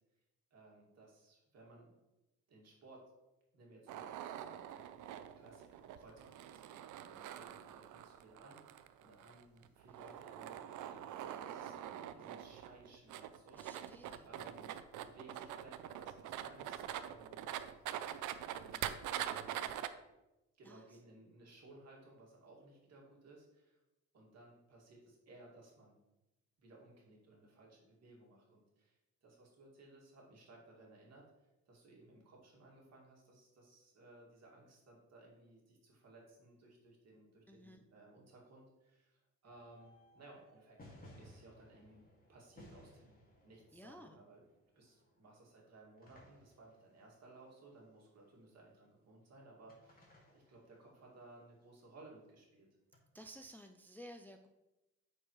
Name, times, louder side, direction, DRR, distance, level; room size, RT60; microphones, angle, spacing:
voice 1, 0.5-1.9 2.5-3.0 3.5-4.9 5.4-10.6 10.9-13.6 14.3-17.5 18.5-19.8 20.5-23.8 24.1-26.0 26.6-40.8 41.2-42.0 42.3-43.2 43.4-44.4 44.7-52.7, right 2 dB, 60° right, -2 dB, 2.2 m, -60 dB
sound 1, 3.9-19.9, right 11 dB, 75° right, 0.5 m, -44 dB
voice 2, 11.2-12.3 13.5-14.3 20.6-20.8 37.5-37.8 43.7-44.2 53.1-54.5, equal, 5° left, 5 dB, 0.4 m, -55 dB
sound 2, 39.4-48.7 49.7-51.6 52.9-53.0, left 1 dB, 30° left, 2.0 m, -62 dB
8.8 x 4.6 x 3.1 m, 0.98 s
cardioid pair, 90°, 30 cm